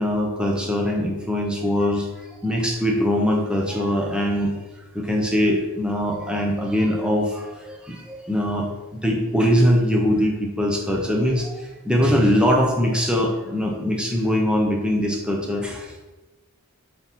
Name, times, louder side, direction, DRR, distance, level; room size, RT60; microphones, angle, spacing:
voice 1, 0.0-2.1 2.4-4.5 4.9-8.7 9.0-11.5 11.8-16.1, equal, 5° right, 0 dB, 1.0 m, -22 dB
7.6 x 4.1 x 4.6 m, 1.1 s
head